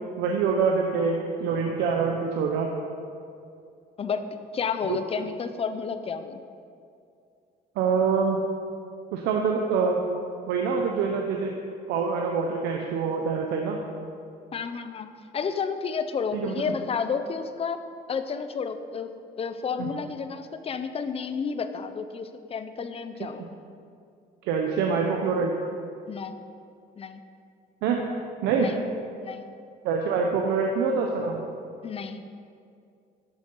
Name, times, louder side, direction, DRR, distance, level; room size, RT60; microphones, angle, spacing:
voice 1, 0.2-2.7 4.9-5.0 7.8-8.4 9.1-10.0 10.5-11.5 11.9-13.8 16.3-16.5 19.8-19.9 23.2-23.4 24.4-25.5 27.8-28.0 28.4-28.7 29.8-31.4, right 5 dB, 90° right, 1 dB, 0.9 m, -25 dB
voice 2, 4.5-6.4 14.5-17.8 18.1-23.5 26.1-26.4 27.0-27.2 28.6-28.7 29.2-29.5 31.8-32.2, left 6 dB, 35° left, 10 dB, 0.7 m, -31 dB
11.0 x 6.5 x 5.5 m, 2.4 s
cardioid pair, 110°, 17 cm